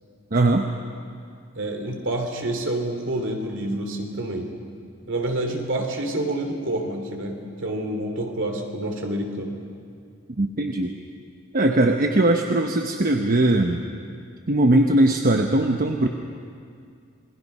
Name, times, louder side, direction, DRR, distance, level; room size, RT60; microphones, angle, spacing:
voice 1, 0.3-0.7 10.4-10.9 11.5-13.8 14.5-16.1, right 1 dB, 45° right, 4 dB, 1.0 m, -20 dB
voice 2, 1.5-4.5 5.1-9.6, right 1 dB, 65° right, 3 dB, 2.9 m, -28 dB
28.0 x 20.5 x 5.5 m, 2.3 s
head